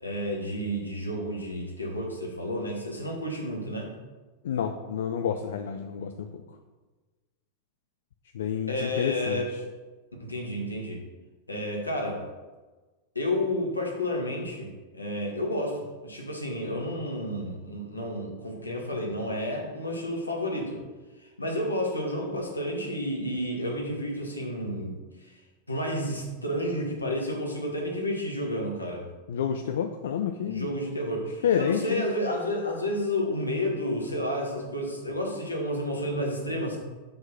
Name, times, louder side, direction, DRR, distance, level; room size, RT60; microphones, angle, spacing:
voice 1, 0.0-3.9 8.7-9.6 10.2-11.0 11.5-12.2 13.1-14.7 14.9-20.8 21.2-25.0 25.2-25.4 25.7-29.0 30.5-36.8, left 1 dB, 85° left, -1 dB, 1.3 m, -31 dB
voice 2, 4.4-6.4 8.3-9.6 29.3-30.7 31.4-32.0, left 8 dB, 60° left, 6 dB, 0.4 m, -29 dB
5.4 x 3.7 x 5.9 m, 1.3 s
figure-of-eight pair, 90°, 0 cm